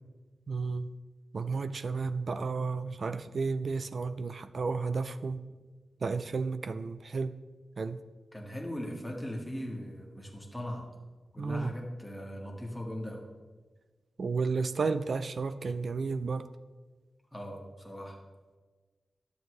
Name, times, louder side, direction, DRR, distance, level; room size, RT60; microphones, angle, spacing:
voice 1, 0.5-0.9 1.3-5.4 6.0-7.3 7.8-8.0 11.4-11.7 14.2-16.5, right 4 dB, 55° right, 11 dB, 0.3 m, -32 dB
voice 2, 8.3-10.8 11.3-13.2 17.3-18.2, equal, 5° left, -1 dB, 1.5 m, -39 dB
11.0 x 7.1 x 3.1 m, 1.3 s
wide cardioid pair, 120°, 0 cm